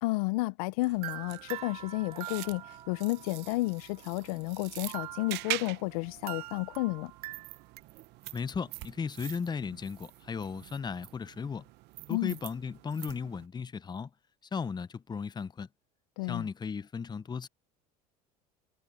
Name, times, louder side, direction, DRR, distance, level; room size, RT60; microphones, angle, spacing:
voice 1, 0.0-7.1 12.1-12.4 16.2-16.5, left 23 dB, 80° left, 0.6 m, -32 dB
sound 1, 0.8-13.5, right 20 dB, 65° right, 0.9 m, -45 dB
sound 2, 1.0-2.9 4.8-7.8, right 17 dB, 90° right, 1.3 m, -43 dB
sound 3, 1.5-6.3 6.7-8.5 9.7-10.2, right 6 dB, 35° right, 2.6 m, -55 dB
voice 2, 8.3-11.6 12.1-14.1 14.5-15.7 16.3-17.5, left 5 dB, 20° left, 0.8 m, -36 dB
supercardioid pair, 85°, 19 cm